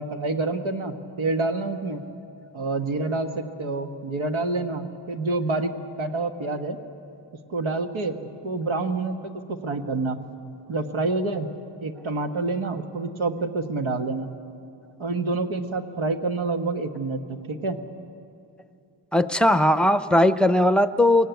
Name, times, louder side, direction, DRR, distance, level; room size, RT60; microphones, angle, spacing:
voice 1, 0.0-2.0 2.5-5.7 6.0-6.8 7.5-8.1 8.4-10.2 10.7-11.5 11.8-14.3 15.0-17.8, right 3 dB, 90° right, 6 dB, 1.5 m, -27 dB
voice 2, 19.1-21.3, left 1 dB, ahead, 11 dB, 0.6 m, -19 dB
24.0 x 17.0 x 9.3 m, 2.6 s
wide cardioid pair, 120°, 46 cm